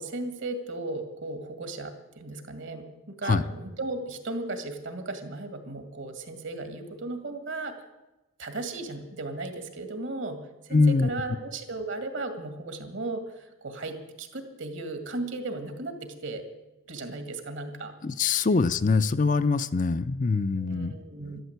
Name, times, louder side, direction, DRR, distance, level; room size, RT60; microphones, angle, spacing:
voice 1, 0.0-7.7 8.4-16.4 16.9-17.9 20.6-21.4, right 2 dB, 60° right, 7 dB, 2.0 m, -36 dB
voice 2, 10.7-11.1 18.0-20.9, left 4 dB, 35° left, 11 dB, 0.5 m, -23 dB
12.5 x 12.5 x 8.0 m, 1.0 s
head